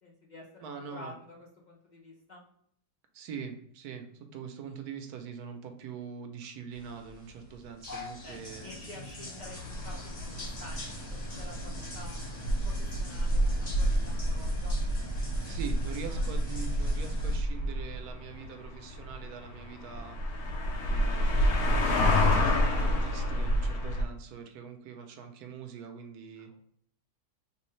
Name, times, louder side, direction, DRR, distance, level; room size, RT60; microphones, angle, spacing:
voice 1, 0.0-2.4 8.2-14.8 15.5-15.6 16.1-16.3 26.5-26.6, left 1 dB, 35° left, -4 dB, 0.9 m, -50 dB
voice 2, 0.6-1.1 3.1-8.8 15.5-20.2 20.8-21.6 22.6-26.5, right 6 dB, 90° right, 5 dB, 1.2 m, -43 dB
sound 1, 6.7-17.4, left 1 dB, 50° left, 1.9 m, -43 dB
sound 2, 9.4-24.0, equal, 90° left, 1.3 m, -29 dB
3.4 x 3.1 x 3.1 m, 0.66 s
omnidirectional pair, 1.6 m